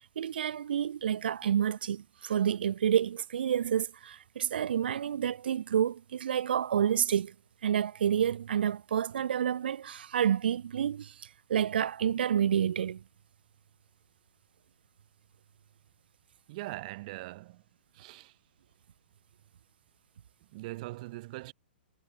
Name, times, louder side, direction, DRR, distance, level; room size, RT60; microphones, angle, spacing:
voice 1, 0.2-7.3 7.6-13.0, right 9 dB, 65° right, 0.6 m, -29 dB
voice 2, 16.5-17.6 17.9-18.3 20.5-21.5, right 19 dB, 45° right, 1.9 m, -41 dB
figure-of-eight pair, 115°, 6 cm